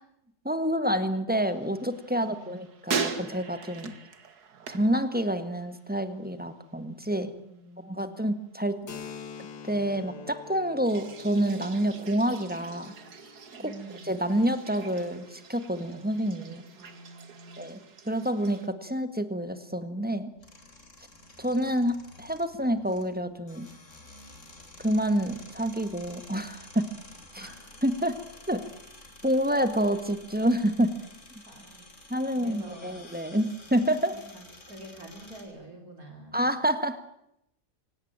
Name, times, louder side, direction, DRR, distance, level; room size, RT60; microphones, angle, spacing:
voice 1, 0.4-3.9 4.7-7.3 7.8-8.8 9.6-12.9 14.1-16.6 17.6-17.8 18.1-20.3 21.4-23.7 24.8-26.9 27.3-27.4 27.8-28.2 28.5-28.6 29.2-30.9 32.1-34.1 36.3-37.0, equal, 5° right, 10 dB, 1.6 m, -28 dB
sound 1, 1.4-5.8 6.1-6.6 10.8-18.7, right 5 dB, 80° right, 2.2 m, -40 dB
voice 2, 2.1-2.5 7.4-8.3 13.6-14.1 16.7-17.7 27.3-27.6 31.4-31.9 32.3-33.0 34.1-36.5, right 2 dB, 65° right, 2 dB, 4.8 m, -47 dB
Keyboard (musical), 8.9-16.2, left 6 dB, 85° left, 2.3 m, -47 dB
sound 2, 20.4-35.4, left 2 dB, 50° left, 4.4 m, -51 dB
26.0 x 18.0 x 8.9 m, 0.79 s
omnidirectional pair, 1.7 m